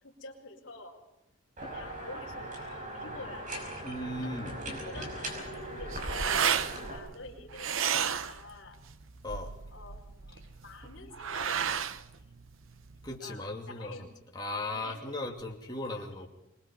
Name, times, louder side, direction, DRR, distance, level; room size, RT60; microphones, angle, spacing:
voice 1, 0.0-1.0 1.6-3.9 4.2-4.5 4.8-8.8 9.7-12.1 13.2-14.2 14.6-15.4 16.0-16.3, left 2 dB, 60° left, -2 dB, 4.7 m, -48 dB
sound 1, 1.6-7.0, right 1 dB, 40° right, 5.5 m, -39 dB
voice 2, 3.8-4.5 9.2-9.5 13.0-14.1 14.3-16.3, left 2 dB, 20° left, 0 dB, 2.5 m, -37 dB
sound 2, 5.3-13.2, right 8 dB, 75° right, 0.8 m, -33 dB
26.0 x 20.5 x 5.5 m, 0.85 s
head